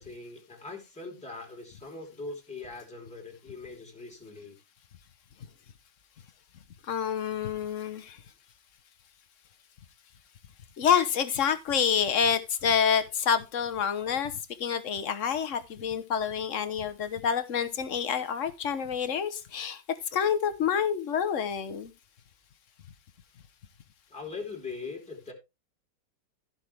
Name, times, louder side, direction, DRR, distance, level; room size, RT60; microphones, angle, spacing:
voice 1, 0.0-4.6 24.1-25.3, left 3 dB, 5° left, 3.0 m, -41 dB
voice 2, 6.9-8.2 10.8-14.3 14.6-19.8 20.1-21.9, left 7 dB, 50° left, 1.2 m, -27 dB
15.0 x 6.0 x 3.3 m
omnidirectional pair, 2.0 m